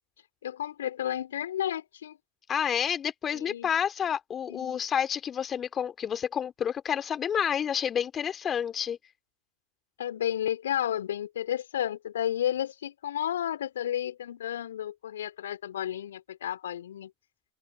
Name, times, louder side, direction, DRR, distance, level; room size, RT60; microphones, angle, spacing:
voice 1, 0.4-2.2 3.3-3.7 4.5-4.8 10.0-17.1, left 10 dB, 70° left, 2.8 m, -32 dB
voice 2, 2.5-9.0, left 8 dB, 30° left, 2.4 m, -29 dB
figure-of-eight pair, 90°, 0 cm